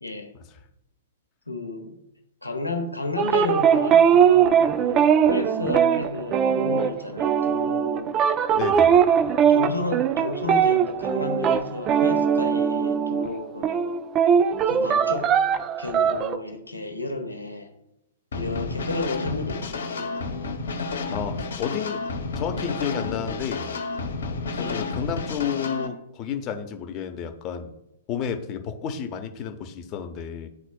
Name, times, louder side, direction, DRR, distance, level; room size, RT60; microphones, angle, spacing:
voice 1, 0.0-0.3 1.5-2.0 2.4-8.1 9.2-14.0 14.7-15.4 15.8-17.7 18.3-20.2 24.6-24.9, left 2 dB, 90° left, 5 dB, 1.1 m, -32 dB
sound 1, 3.2-13.4 13.6-16.4, right 8 dB, 25° right, 0.4 m, -20 dB
voice 2, 8.5-9.2 21.1-22.0 22.3-23.7 24.5-27.7 28.1-30.5, left 8 dB, 30° left, 6 dB, 0.8 m, -31 dB
sound 2, 18.3-25.9, left 3 dB, 65° left, 1.0 m, -31 dB
12.0 x 4.1 x 2.2 m, 0.85 s
figure-of-eight pair, 110°, 0 cm